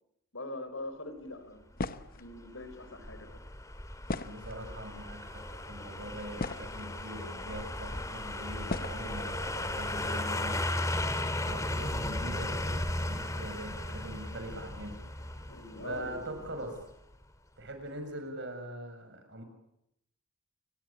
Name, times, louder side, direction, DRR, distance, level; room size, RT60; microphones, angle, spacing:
voice 1, 0.3-1.7 2.1-3.3 15.5-16.6, left 2 dB, 60° left, 10 dB, 4.7 m, -43 dB
sound 1, 1.8-2.2 4.1-4.8 5.6-5.7 6.1-6.9 7.8-7.9 8.7-9.0, left 2 dB, 40° left, 1.0 m, -36 dB
sound 2, 2.0-16.9 17.2-17.3, left 1 dB, 15° left, 2.3 m, -36 dB
voice 2, 4.2-15.0 15.8-16.7 17.6-19.4, right 1 dB, 55° right, 6 dB, 6.7 m, -42 dB
29.5 x 22.5 x 8.7 m, 0.79 s
head